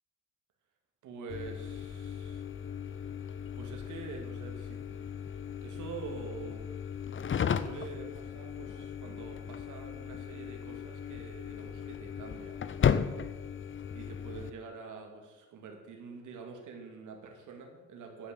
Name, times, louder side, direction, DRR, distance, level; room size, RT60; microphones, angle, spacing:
voice 1, 1.0-2.4 3.5-5.0 5.6-6.7 7.6-12.6 13.9-18.3, right 5 dB, 85° right, 3 dB, 2.3 m, -46 dB
sound 1, 1.3-14.5, left 7 dB, 40° left, 0.7 m, -36 dB
11.5 x 5.7 x 8.2 m, 1.2 s
cardioid pair, 80°, 30 cm